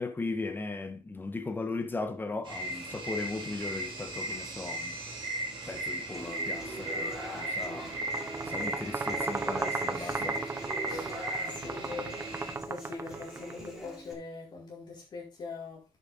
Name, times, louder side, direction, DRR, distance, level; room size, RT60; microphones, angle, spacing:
voice 1, 0.0-4.9 5.7-7.9 8.5-10.4, left 3 dB, 15° left, 1.3 m, -37 dB
sound 1, 2.5-12.6, right 1 dB, 45° right, 3.8 m, -37 dB
Human voice / Acoustic guitar, 6.1-14.1, right 1 dB, 5° right, 4.2 m, -42 dB
sound 2, 7.9-13.7, right 4 dB, 20° right, 0.5 m, -36 dB
voice 2, 9.9-10.5 10.9-11.2 11.4-12.2 12.7-15.8, left 4 dB, 40° left, 4.0 m, -43 dB
9.9 x 7.2 x 4.1 m
wide cardioid pair, 165°, 12 cm